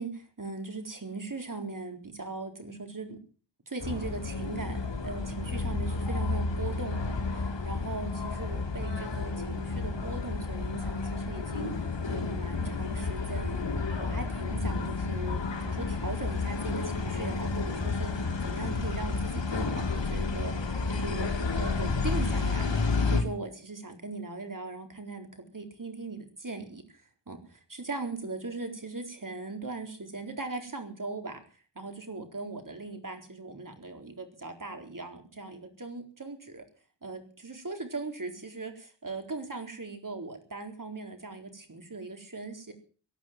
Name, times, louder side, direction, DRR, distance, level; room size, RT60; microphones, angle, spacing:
voice 1, 0.0-3.2 3.7-13.7 14.0-15.4 15.7-20.6 20.9-22.7 23.0-31.4 31.7-36.6 37.0-42.7, right 3 dB, 45° right, 5 dB, 4.2 m, -39 dB
sound 1, 3.8-23.2, left 4 dB, 85° left, 3.1 m, -31 dB
17.5 x 11.0 x 7.5 m, 0.42 s
wide cardioid pair, 55°, 43 cm